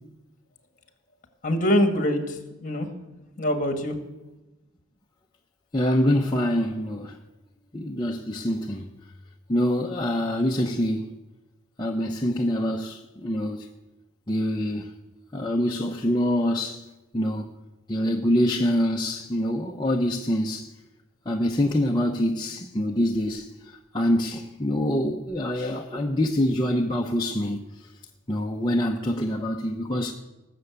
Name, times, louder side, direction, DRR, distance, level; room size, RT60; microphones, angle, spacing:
voice 1, 1.4-2.9 3.4-4.0, equal, 35° left, 1.7 m, -24 dB
voice 2, 5.7-7.2 7.7-8.9 9.5-11.2 11.8-13.7 14.3-14.9 15.3-16.8 17.1-17.5 17.9-20.7 21.3-27.6 28.3-30.1, equal, 20° left, 0.7 m, -25 dB
18.5 x 6.8 x 8.2 m
head